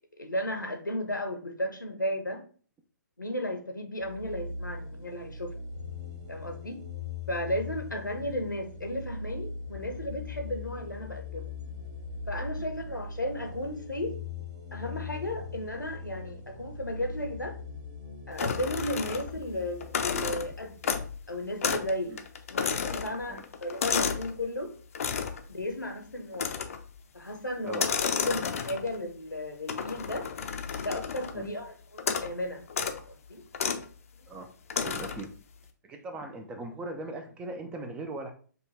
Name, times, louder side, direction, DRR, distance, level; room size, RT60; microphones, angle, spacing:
voice 1, 0.2-2.4 3.2-5.5 6.3-6.8 7.3-11.5 12.3-14.2 14.7-17.6 18.3-21.0 21.3-22.2 22.5-24.7 25.5-26.5 27.1-27.9 28.3-30.3 30.8-32.6 33.1-33.4, left 1 dB, 85° left, 5 dB, 0.9 m, -34 dB
sound 1, 4.0-21.4, left 4 dB, 30° right, 1.4 m, -41 dB
sound 2, 18.4-19.5 19.8-21.2 21.6-21.9 22.2-24.3 25.0-25.4 26.3-26.9 27.7-29.0 29.7-31.4 32.0-32.3 32.7-33.0 33.5-33.9 34.7-35.3, left 6 dB, 50° left, 0.5 m, -31 dB
voice 2, 34.7-35.3 35.8-38.3, right 2 dB, 10° right, 6 dB, 0.3 m, -39 dB
5.2 x 2.2 x 3.2 m, 0.42 s
figure-of-eight pair, 130°, 10 cm